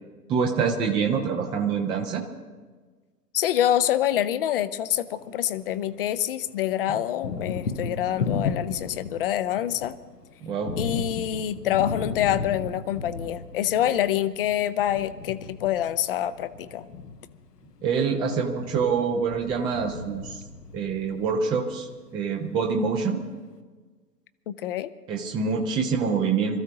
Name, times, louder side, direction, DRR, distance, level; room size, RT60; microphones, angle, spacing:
voice 1, 0.3-2.2 6.9-7.0 10.4-10.8 17.8-20.4 20.7-23.2 25.1-26.6, right 5 dB, 10° right, 1 dB, 0.6 m, -26 dB
voice 2, 3.3-9.9 10.8-16.9 24.5-24.9, left 11 dB, 35° left, 14 dB, 0.7 m, -26 dB
Thunder, 5.0-6.2 6.5-21.7, left 4 dB, 70° left, 1.3 m, -35 dB
26.0 x 14.0 x 2.9 m, 1.4 s
figure-of-eight pair, 115°, 49 cm